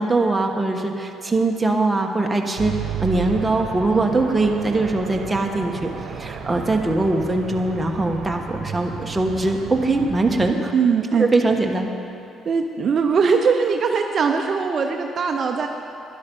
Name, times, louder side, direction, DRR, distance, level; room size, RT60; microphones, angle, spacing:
voice 1, 0.0-2.7 3.0-5.9 6.2-10.7 11.2-11.9, right 2 dB, 15° right, 1 dB, 1.3 m, -21 dB
sound 1, 2.6-10.5, right 7 dB, 70° right, 1.1 m, -33 dB
voice 2, 10.7-11.3 12.4-15.7, right 5 dB, 50° right, 3 dB, 0.7 m, -20 dB
12.0 x 11.0 x 5.5 m, 2.8 s
cardioid pair, 95°, 0 cm